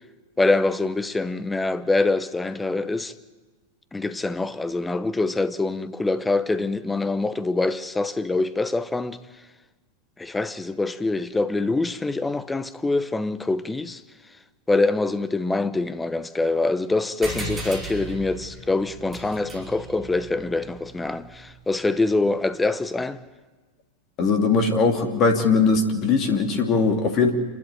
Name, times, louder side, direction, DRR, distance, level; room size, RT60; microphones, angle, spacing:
voice 1, 0.4-3.1 3.9-9.2 10.2-14.0 14.7-23.2, left 3 dB, 10° left, 0.9 m, -24 dB
sound 1, 17.2-22.1, right 1 dB, 20° right, 5.1 m, -37 dB
voice 2, 24.2-27.3, left 4 dB, 35° left, 2.7 m, -20 dB
27.0 x 12.0 x 9.7 m
figure-of-eight pair, 90°, 0 cm